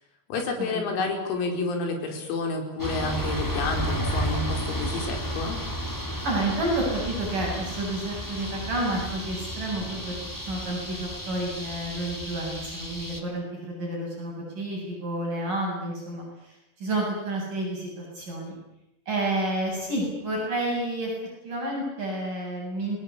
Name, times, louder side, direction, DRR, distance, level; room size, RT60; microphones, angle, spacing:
voice 1, 0.3-5.6, left 3 dB, 85° left, 3 dB, 7.4 m, -29 dB
sound 1, 2.8-13.2, equal, 5° left, 1.6 m, -32 dB
voice 2, 6.2-18.6 19.1-21.1 21.4-23.0, right 1 dB, 40° right, -2 dB, 9.1 m, -30 dB
29.5 x 21.0 x 8.6 m, 0.87 s
omnidirectional pair, 6.0 m